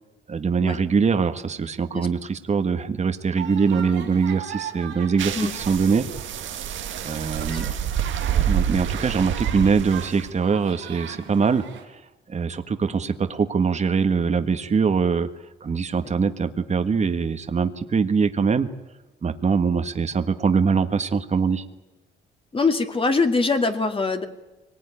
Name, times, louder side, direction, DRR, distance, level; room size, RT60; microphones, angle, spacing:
voice 1, 0.3-6.0 7.0-7.7 8.5-12.0 12.3-15.3 15.6-18.7 19.2-21.6, right 5 dB, 35° right, 9 dB, 1.5 m, -23 dB
sound 1, 3.3-11.8, right 9 dB, 90° right, 4.2 m, -39 dB
sound 2, 5.2-10.3, right 9 dB, 75° right, 1.7 m, -27 dB
voice 2, 22.5-24.2, left 3 dB, 25° left, 6 dB, 2.2 m, -23 dB
24.0 x 19.0 x 9.9 m, 1.1 s
cardioid pair, 90°, 20 cm